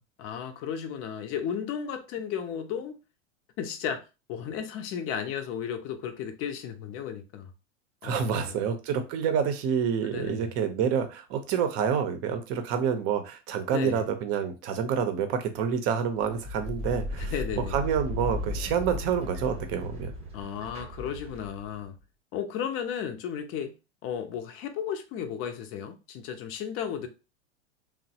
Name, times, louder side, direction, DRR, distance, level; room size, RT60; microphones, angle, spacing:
voice 1, 0.2-3.0 3.6-4.0 4.3-7.5 8.0-8.6 10.0-10.5 13.7-14.0 17.1-17.8 20.3-22.0 22.3-23.7 24.0-27.1, left 8 dB, 35° left, 0.6 m, -34 dB
voice 2, 8.0-17.3 17.7-20.1, right 7 dB, 40° right, 0.7 m, -28 dB
sound 1, 16.2-21.8, left 1 dB, 15° right, 0.9 m, -36 dB
3.0 x 2.0 x 2.7 m
hypercardioid pair, 95°, 36 cm